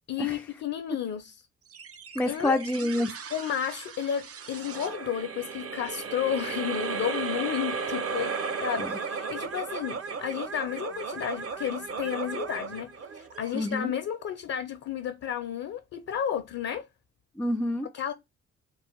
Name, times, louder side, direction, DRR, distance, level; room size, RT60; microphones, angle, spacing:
voice 1, 0.1-1.5 2.3-2.6 3.3-8.3 8.6-16.9 17.9-18.1, left 9 dB, 45° left, 0.7 m, -32 dB
sound 1, 1.7-14.3, right 5 dB, 40° right, 0.8 m, -35 dB
voice 2, 2.2-3.1 8.8-8.9 13.5-13.9 17.4-17.9, left 1 dB, 5° left, 0.5 m, -27 dB
4.1 x 2.4 x 3.5 m
hypercardioid pair, 40°, 36 cm